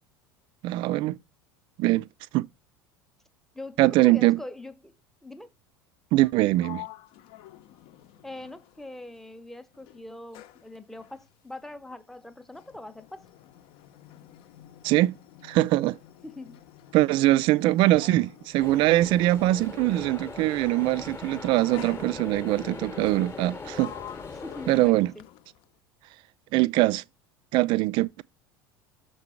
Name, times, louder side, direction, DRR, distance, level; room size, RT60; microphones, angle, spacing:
voice 1, 0.6-1.2 1.8-2.1 2.3-2.5 3.8-4.4 6.1-6.9 14.8-15.2 15.4-16.0 16.9-23.9 24.7-25.1 26.5-27.0 27.5-28.2, right 17 dB, 40° right, 0.4 m, -22 dB
voice 2, 3.5-4.9 5.2-5.5 8.2-13.3 16.2-16.6 24.3-25.2, left 2 dB, 5° left, 0.7 m, -42 dB
Sliding door, 6.1-9.4 9.7-19.9 20.8-21.1 21.7-22.6 23.2-25.8, left 12 dB, 45° left, 0.7 m, -49 dB
sound 1, 18.6-24.9, left 4 dB, 20° left, 1.0 m, -40 dB
6.6 x 4.7 x 5.7 m
figure-of-eight pair, 75°, 12 cm